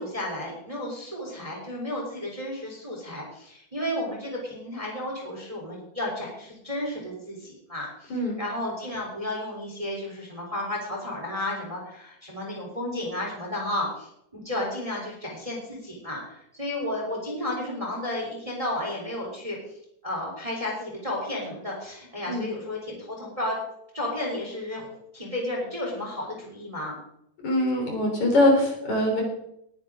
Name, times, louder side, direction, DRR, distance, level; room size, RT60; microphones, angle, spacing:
voice 1, 0.0-19.6 20.0-23.6 23.9-27.0, left 1 dB, 10° right, -2 dB, 3.2 m, -33 dB
voice 2, 27.4-29.2, left 1 dB, 60° left, 0 dB, 5.2 m, -22 dB
19.0 x 10.5 x 3.8 m, 0.75 s
omnidirectional pair, 3.7 m